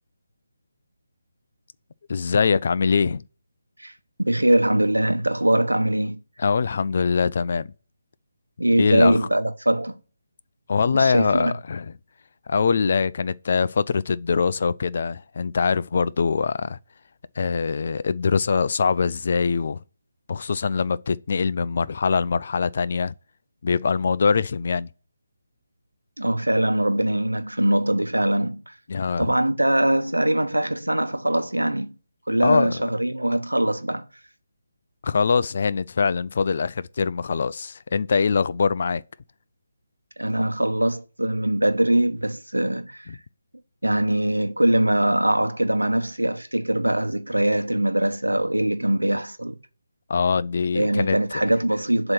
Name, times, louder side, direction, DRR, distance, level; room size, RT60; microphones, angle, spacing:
voice 1, 2.1-3.2 6.4-7.7 8.8-9.3 10.7-11.9 12.5-16.8 17.4-19.8 20.3-23.1 23.6-24.9 28.9-29.4 32.4-32.7 35.0-39.0 50.1-51.2, left 5 dB, 45° left, 0.3 m, -23 dB
voice 2, 4.2-6.2 8.6-10.0 10.9-11.5 26.2-28.7 29.2-31.9 32.3-34.0 40.2-43.1 43.8-49.6 50.7-52.1, right 1 dB, 80° right, 0.9 m, -22 dB
7.5 x 2.9 x 5.9 m
figure-of-eight pair, 150°, 0 cm